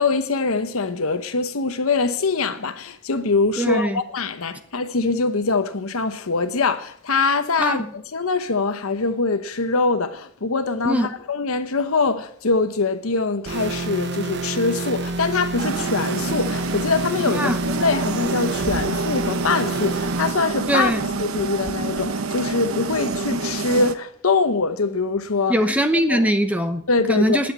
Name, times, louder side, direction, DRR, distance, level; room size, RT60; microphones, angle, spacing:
voice 1, 0.0-25.6 26.1-26.3 26.9-27.4, left 4 dB, 85° left, 0.9 m, -23 dB
voice 2, 3.6-4.0 7.6-7.8 10.9-11.1 17.4-17.6 20.7-21.0 25.5-26.8 27.1-27.5, equal, 5° right, 0.8 m, -21 dB
sound 1, 13.5-20.3, right 2 dB, 50° right, 0.8 m, -28 dB
sound 2, 15.6-23.9, right 3 dB, 85° right, 0.9 m, -27 dB
11.5 x 7.9 x 8.6 m
head